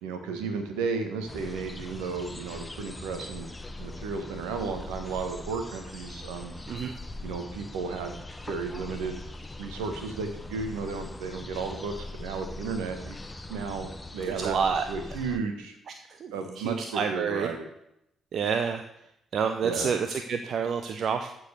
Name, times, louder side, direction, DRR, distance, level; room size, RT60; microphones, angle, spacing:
voice 1, 0.0-3.5 3.8-6.5 7.2-8.2 8.5-9.2 9.6-13.2 13.5-14.6 14.9-15.8 16.3-17.7 19.6-19.9, right 4 dB, 75° right, 6 dB, 1.4 m, -33 dB
sound 1, 1.3-15.4, left 2 dB, 20° left, 1.0 m, -41 dB
voice 2, 14.3-14.9 16.2-17.5 18.3-18.8 19.3-21.3, right 6 dB, 60° right, 7 dB, 0.7 m, -28 dB
13.0 x 4.7 x 6.6 m, 0.81 s
hypercardioid pair, 45°, 0 cm